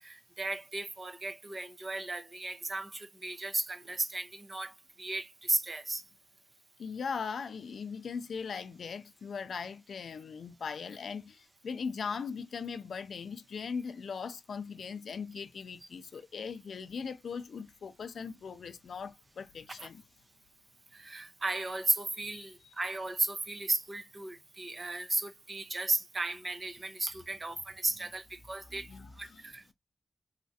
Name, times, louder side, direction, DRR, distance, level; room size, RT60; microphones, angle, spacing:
voice 1, 0.0-4.7 5.0-6.0 19.8-19.9 20.9-28.9 29.2-29.7, right 2 dB, 30° right, 0.5 m, -35 dB
voice 2, 6.8-20.0 22.1-22.7 28.6-29.4, left 5 dB, 65° left, 0.3 m, -40 dB
3.1 x 2.4 x 2.6 m
wide cardioid pair, 155°, 0 cm